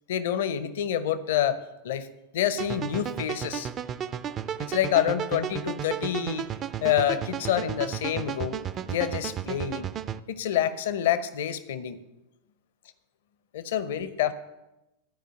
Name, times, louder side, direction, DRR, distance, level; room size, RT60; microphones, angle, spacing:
voice 1, 0.1-2.1 2.3-3.7 4.6-6.5 6.8-8.6 8.9-9.9 10.3-12.0 13.5-14.3, left 10 dB, 55° left, 13 dB, 0.7 m, -27 dB
sound 1, 2.6-10.2, right 9 dB, 30° right, 0.4 m, -33 dB
12.5 x 5.0 x 7.7 m, 0.95 s
figure-of-eight pair, 90°, 0 cm